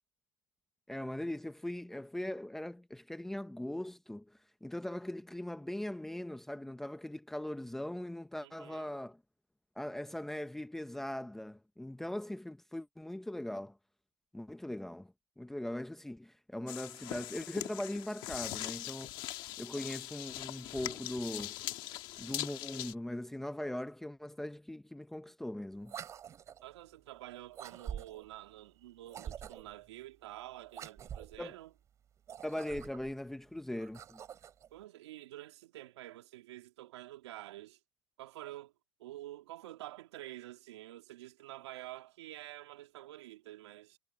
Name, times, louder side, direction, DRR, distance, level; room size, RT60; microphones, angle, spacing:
voice 1, 0.9-4.3 4.6-9.2 9.8-13.8 14.3-15.1 15.4-19.3 19.6-21.6 22.2-25.9 31.4-31.5 32.4-34.2, left 1 dB, ahead, 0.9 m, -40 dB
voice 2, 8.4-8.9 26.6-31.7 34.7-37.8 38.2-38.7 39.0-44.0, right 15 dB, 70° right, 2.8 m, -48 dB
sound 1, 16.7-22.9, left 16 dB, 30° left, 1.7 m, -41 dB
sound 2, 25.8-26.7 27.5-28.3 29.0-29.8 30.7-31.4 32.2-33.1 33.8-34.7, right 9 dB, 20° right, 3.1 m, -46 dB
supercardioid pair, 160°, 15 cm